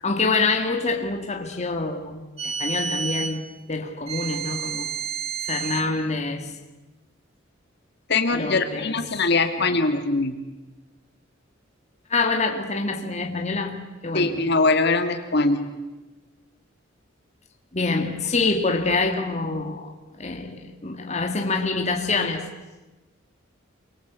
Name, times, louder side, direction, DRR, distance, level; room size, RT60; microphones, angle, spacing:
voice 1, 0.0-4.9 5.5-6.5 8.3-9.0 12.1-14.4 17.7-22.5, left 3 dB, 35° left, 2.2 m, -26 dB
sound 1, 2.4-3.4 4.1-5.9, right 6 dB, 30° right, 2.3 m, -30 dB
voice 2, 8.1-10.4 14.1-15.8, left 3 dB, 55° left, 2.3 m, -22 dB
28.0 x 23.5 x 8.3 m
head